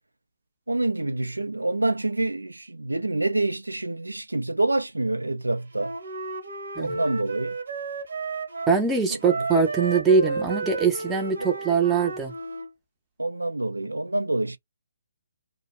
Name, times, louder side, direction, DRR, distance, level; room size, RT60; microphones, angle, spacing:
voice 1, 0.7-5.9 6.8-7.5 11.4-11.5 13.2-14.6, right 2 dB, 85° right, 0.4 m, -27 dB
Wind instrument woodwind instrument, 5.8-8.8 9.2-12.7, right 3 dB, 65° right, 0.9 m, -32 dB
voice 2, 8.7-12.3, right 5 dB, 10° right, 0.6 m, -22 dB
2.3 x 2.1 x 3.0 m
figure-of-eight pair, 140°, 0 cm